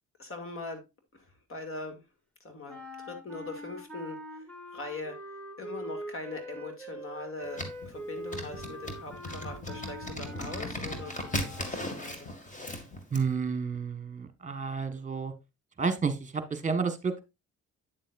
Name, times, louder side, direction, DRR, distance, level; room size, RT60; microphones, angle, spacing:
voice 1, 0.2-0.8 1.1-2.0 2.4-2.8 3.1-5.3 5.6-12.3, left 3 dB, 45° left, 5 dB, 2.4 m, -41 dB
sound 1, 2.7-11.8, equal, 5° left, 1.9 m, -43 dB
sound 2, 7.6-13.3, left 1 dB, 25° left, 2.1 m, -37 dB
voice 2, 13.1-15.3 15.8-17.2, right 5 dB, 25° right, 10 dB, 1.5 m, -30 dB
9.1 x 7.4 x 2.5 m, 0.24 s
cardioid pair, 90°, 30 cm